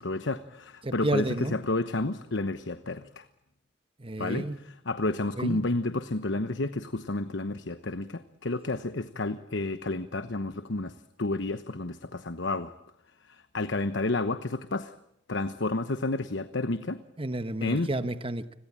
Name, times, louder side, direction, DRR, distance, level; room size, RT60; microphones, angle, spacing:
voice 1, 0.0-3.2 4.2-10.9 11.2-12.7 13.3-14.9 15.3-17.0 17.6-17.9, left 2 dB, 65° left, 11 dB, 1.1 m, -30 dB
voice 2, 0.8-1.6 4.0-4.6 5.4-5.6 17.2-18.5, right 1 dB, 30° right, 11 dB, 1.1 m, -31 dB
30.0 x 22.0 x 8.8 m, 0.79 s
head